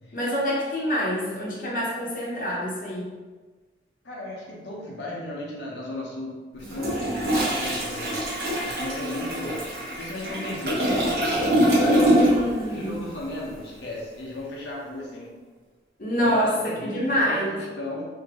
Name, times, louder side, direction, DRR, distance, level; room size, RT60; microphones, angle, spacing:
voice 1, 0.1-3.0 11.5-13.0 16.0-17.6, equal, 50° left, -5 dB, 0.8 m, -26 dB
voice 2, 4.0-8.2 8.6-9.6 10.0-10.9 11.8-12.4 12.7-15.3 16.1-18.1, left 1 dB, 85° left, -4 dB, 0.8 m, -35 dB
Toilet flush, 6.6-12.6 12.9-13.1, equal, 60° right, 1.1 m, -24 dB
3.3 x 2.7 x 3.6 m, 1.4 s
head